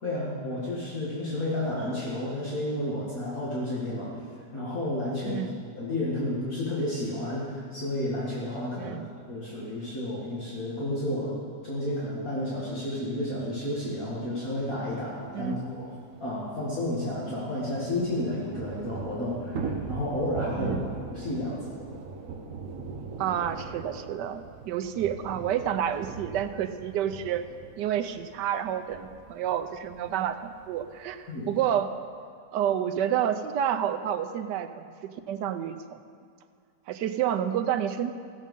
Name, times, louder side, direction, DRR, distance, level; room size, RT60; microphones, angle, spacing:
voice 1, 0.0-4.1 4.5-5.4 5.8-9.0 9.3-11.4 11.6-15.9 16.2-21.6 31.3-31.5, left 1 dB, 55° left, -8 dB, 2.4 m, -31 dB
voice 2, 5.2-5.6 8.8-9.1 15.3-15.6 20.6-20.9 23.2-27.5 27.8-31.9 32.5-34.9 35.3-36.0 36.9-38.1, right 9 dB, 85° right, 8 dB, 1.3 m, -29 dB
Thunder / Rain, 15.3-15.4 15.6-15.7 16.0-31.9, right 4 dB, 55° right, 1.2 m, -41 dB
15.5 x 7.4 x 5.4 m, 2.3 s
omnidirectional pair, 1.8 m